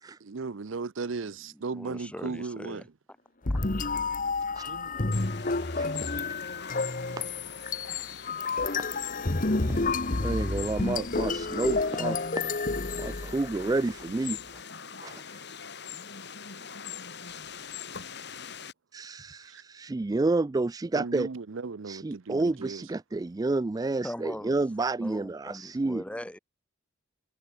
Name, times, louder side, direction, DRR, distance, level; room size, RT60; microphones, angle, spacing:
voice 1, 0.2-2.8 4.7-5.2 19.5-19.6 20.9-22.8, right 4 dB, 75° right, 0.7 m, -36 dB
voice 2, 1.5-2.9 24.0-24.5 25.0-26.4, equal, 5° left, 1.5 m, -40 dB
sound 1, 3.4-13.8, left 3 dB, 45° left, 1.3 m, -30 dB
sound 2, 5.1-18.7, left 7 dB, 60° left, 5.8 m, -42 dB
voice 3, 10.2-12.2 13.0-14.6 15.0-15.4 18.9-21.3 21.9-26.0, right 2 dB, 20° right, 0.3 m, -30 dB
head